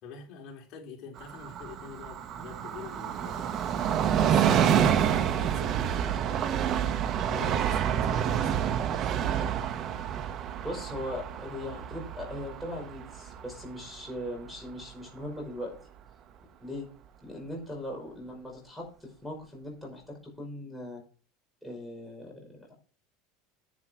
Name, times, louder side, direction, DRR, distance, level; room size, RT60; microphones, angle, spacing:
voice 1, 0.0-3.5 4.2-6.9 7.3-8.5 8.9-9.4, left 5 dB, 45° left, -1 dB, 3.8 m, -45 dB
Train, 1.2-14.5 14.8-14.9, right 9 dB, 40° right, 1.0 m, -28 dB
voice 2, 10.6-15.8 16.6-16.9 17.2-21.0 21.6-22.7, left 1 dB, ahead, -2 dB, 5.6 m, -39 dB
10.5 x 9.7 x 4.5 m, 0.40 s
supercardioid pair, 140°, 0 cm